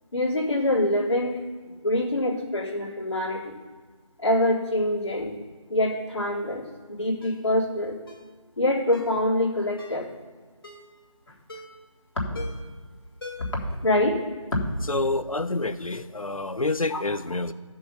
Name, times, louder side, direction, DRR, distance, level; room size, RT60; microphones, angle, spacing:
voice 1, 0.1-1.4 1.8-3.6 4.2-5.4 5.7-8.0 8.6-10.1 12.2-12.5 13.6-14.2 14.5-14.7 16.9-17.0, left 1 dB, 60° left, -5 dB, 3.6 m, -25 dB
Ringtone, 7.2-7.4 8.1-8.3 8.9-9.2 9.8-10.1 10.6-10.9 11.5-11.9 12.3-12.7 13.2-13.7 14.0-14.1, left 2 dB, 45° left, 1.8 m, -42 dB
voice 2, 14.9-17.5, left 2 dB, 90° left, 12 dB, 1.0 m, -28 dB
13.0 x 6.9 x 5.6 m, 1.5 s
figure-of-eight pair, 170°, 17 cm